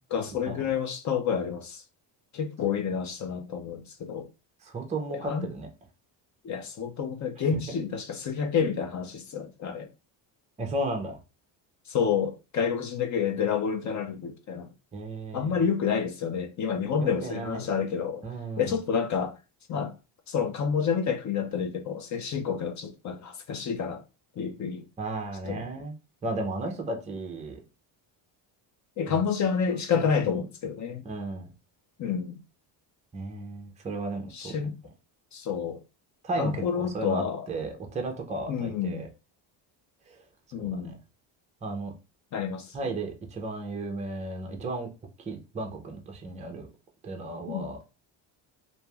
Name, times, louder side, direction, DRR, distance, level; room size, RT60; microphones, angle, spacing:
voice 1, 0.1-1.8 2.3-4.3 5.1-5.5 6.4-9.9 11.9-14.7 15.3-18.2 18.6-19.4 19.7-19.9 20.3-24.0 24.4-24.8 25.4-25.6 29.0-31.0 32.0-32.4 34.3-34.7 35.3-35.8 36.4-37.4 38.5-39.0 40.5-40.9 42.3-42.7 47.5-47.7, left 6 dB, 40° left, 0.4 m, -29 dB
voice 2, 4.6-5.7 7.5-7.7 10.6-11.2 14.9-15.6 17.0-17.7 18.2-18.8 25.0-25.9 26.2-27.6 29.1-29.2 30.2-30.4 31.0-31.5 33.1-34.5 36.2-39.1 40.1-40.2 40.6-41.0 41.6-41.9 42.7-44.9 45.2-46.7 47.0-47.8, right 2 dB, 15° right, 0.5 m, -34 dB
3.0 x 2.6 x 2.3 m
cardioid pair, 140°, 48 cm